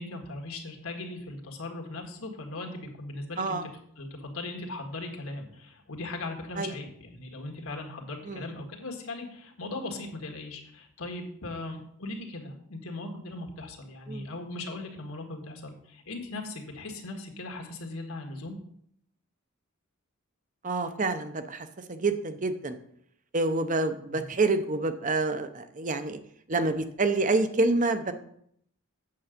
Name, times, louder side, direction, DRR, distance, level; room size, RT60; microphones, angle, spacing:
voice 1, 0.0-3.6 4.0-18.5 24.1-24.2, left 2 dB, 80° left, 2 dB, 1.7 m, -39 dB
voice 2, 20.6-22.7 23.3-26.2 26.5-28.1, right 3 dB, 35° right, 10 dB, 0.7 m, -27 dB
8.5 x 6.9 x 5.1 m, 0.69 s
head